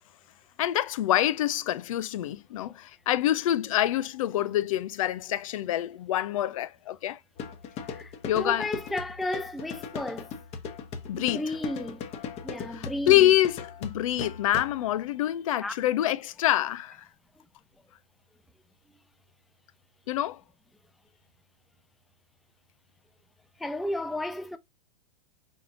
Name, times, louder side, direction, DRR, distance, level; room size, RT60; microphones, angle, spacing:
voice 1, 0.6-7.2 8.3-8.7 11.1-11.4 12.7-17.0 20.1-20.4, left 13 dB, 55° left, 0.6 m, -26 dB
sound 1, 7.4-14.9, left 6 dB, 30° left, 1.0 m, -39 dB
voice 2, 7.9-10.3 11.1-13.3 15.6-15.7 23.6-24.6, left 1 dB, ahead, 0.3 m, -34 dB
4.8 x 4.4 x 2.3 m
figure-of-eight pair, 100°, 21 cm